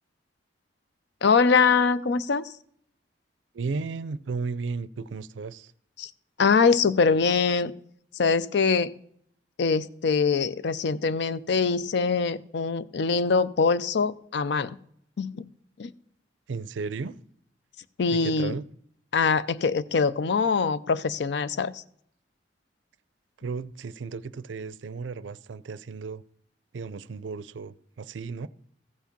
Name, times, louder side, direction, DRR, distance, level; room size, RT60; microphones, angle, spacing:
voice 1, 1.2-2.4 6.0-6.1 6.4-7.7 8.2-8.9 9.6-14.7 15.2-15.5 15.8-15.9 18.0-18.5 19.1-21.7, left 5 dB, 65° left, 0.5 m, -23 dB
voice 2, 3.5-5.7 16.5-17.2 18.1-18.6 23.4-26.2 26.7-28.5, right 4 dB, 90° right, 0.5 m, -34 dB
14.5 x 5.0 x 5.2 m
head